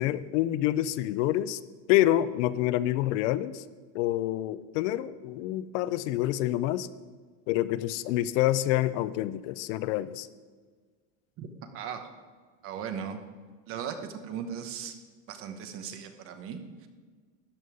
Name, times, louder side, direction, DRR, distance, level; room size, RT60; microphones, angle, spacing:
voice 1, 0.0-1.6 1.9-3.6 3.9-6.9 7.5-10.3, left 14 dB, 65° left, 16 dB, 0.6 m, -27 dB
voice 2, 11.7-12.1 12.6-13.2 13.7-14.9 15.3-16.9, right 7 dB, 35° right, 7 dB, 1.1 m, -37 dB
13.0 x 5.4 x 9.2 m, 1.5 s
cardioid pair, 175°, 38 cm